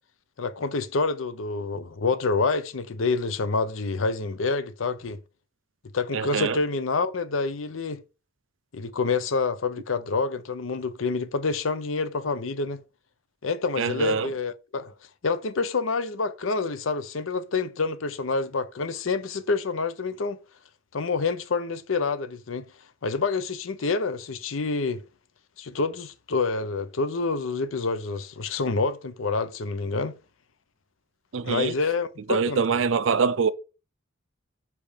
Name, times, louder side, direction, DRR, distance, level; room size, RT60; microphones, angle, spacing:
voice 1, 0.4-5.2 5.9-8.0 8.7-12.8 13.4-14.9 15.2-20.4 20.9-22.6 23.0-25.0 25.6-30.1 31.4-32.6, left 4 dB, 85° left, 0.7 m, -27 dB
voice 2, 6.1-6.6 13.8-14.3 31.3-31.7 32.3-33.5, right 6 dB, 75° right, 0.5 m, -24 dB
6.9 x 3.3 x 5.1 m
head